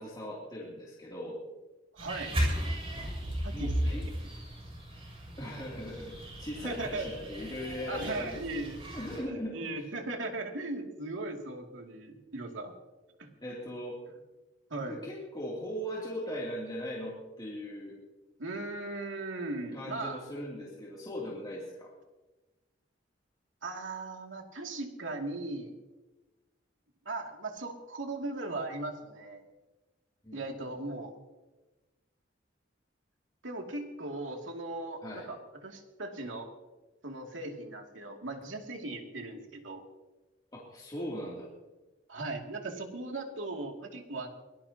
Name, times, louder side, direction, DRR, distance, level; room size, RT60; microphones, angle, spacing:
voice 1, 0.0-1.4 3.5-4.0 5.4-8.4 8.9-9.9 13.4-14.0 14.9-18.0 19.7-21.9 30.2-30.4 35.0-35.3 40.5-41.5, equal, 20° left, -5 dB, 2.8 m, -39 dB
voice 2, 1.9-2.4 3.4-4.1 6.6-7.1 7.9-8.8 9.3-12.7 13.2-13.3 14.7-15.0 18.4-20.2 23.6-25.7 27.0-29.4 30.3-31.1 33.4-36.5 37.0-39.8 42.1-44.3, right 2 dB, 90° right, 2 dB, 2.5 m, -38 dB
sound 1, 2.0-9.2, equal, 30° right, 6.8 m, -35 dB
23.5 x 18.0 x 2.9 m, 1.1 s
head